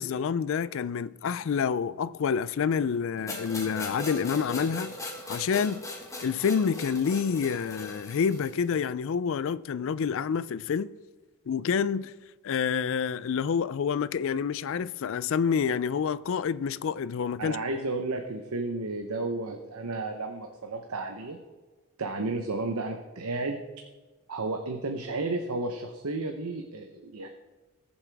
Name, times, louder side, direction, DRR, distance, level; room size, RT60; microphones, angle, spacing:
voice 1, 0.0-4.9 5.3-5.8 6.2-10.9 11.5-12.1 12.4-17.8, left 6 dB, 60° left, 0.3 m, -28 dB
sound 1, 3.3-8.6, left 2 dB, 15° left, 1.4 m, -39 dB
voice 2, 17.4-21.4 22.0-23.6 24.3-27.3, right 2 dB, 75° right, 0.8 m, -32 dB
19.5 x 7.3 x 3.4 m
head